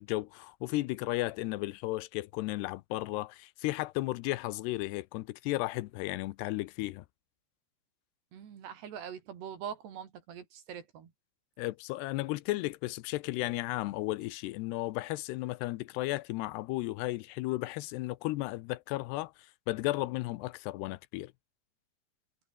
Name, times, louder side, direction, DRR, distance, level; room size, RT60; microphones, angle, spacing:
voice 1, 0.0-7.1 11.6-21.3, left 19 dB, 80° left, 2.8 m, -34 dB
voice 2, 8.3-11.1, right 8 dB, 75° right, 5.2 m, -43 dB
omnidirectional pair, 4.9 m